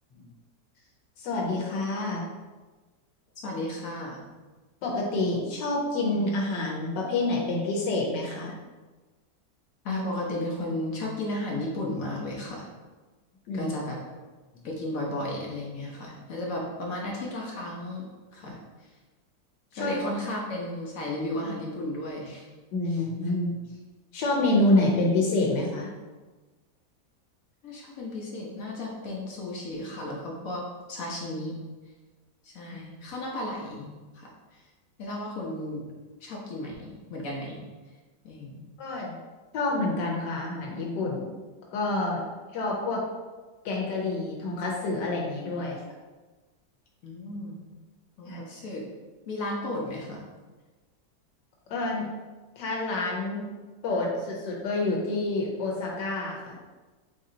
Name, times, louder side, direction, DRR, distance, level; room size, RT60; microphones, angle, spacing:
voice 1, 1.2-2.3 4.8-8.5 13.5-13.7 14.5-14.6 19.7-19.9 22.7-23.8 24.1-25.9 38.8-39.2 39.5-41.3 41.7-42.2 42.5-43.0 43.6-45.8 48.2-48.4 51.7-52.1 52.6-53.4 53.8-56.6, left 2 dB, 90° left, -2 dB, 1.4 m, -28 dB
voice 2, 3.4-4.3 9.8-12.7 13.5-14.0 14.6-18.6 19.8-22.5 27.6-30.6 30.9-31.6 32.4-33.9 34.1-34.6 35.0-35.8 36.2-37.6 38.2-38.6 47.0-47.6 48.2-48.8 49.3-50.2, left 1 dB, 60° left, -2 dB, 1.1 m, -34 dB
4.1 x 2.7 x 3.8 m, 1.3 s
omnidirectional pair, 1.8 m